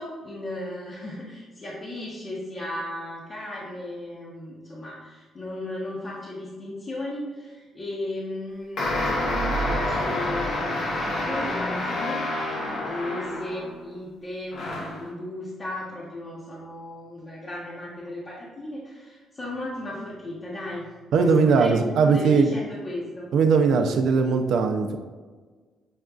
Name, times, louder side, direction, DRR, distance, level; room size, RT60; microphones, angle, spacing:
voice 1, 0.0-12.2 12.8-20.9 21.2-23.3, left 1 dB, 35° left, -7 dB, 0.8 m, -35 dB
sound 1, 8.8-13.8 14.5-15.1, left 1 dB, 75° left, 0.9 m, -28 dB
voice 2, 21.1-22.5 23.3-25.0, right 5 dB, 75° right, 6 dB, 0.4 m, -20 dB
6.2 x 2.5 x 2.3 m, 1.4 s
cardioid pair, 90°, 0 cm